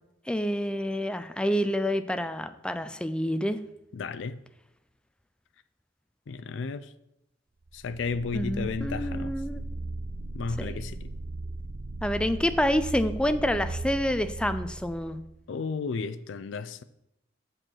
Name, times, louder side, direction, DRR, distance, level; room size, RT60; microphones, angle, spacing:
voice 1, 0.3-3.6 8.3-9.6 10.6-10.8 12.0-15.2, equal, 5° left, 0.4 m, -28 dB
voice 2, 3.9-4.4 6.3-6.9 7.7-9.3 10.3-11.0 15.5-16.8, left 4 dB, 75° left, 0.4 m, -33 dB
sound 1, 7.7-15.4, right 2 dB, 75° right, 0.7 m, -37 dB
7.8 x 4.5 x 6.2 m
head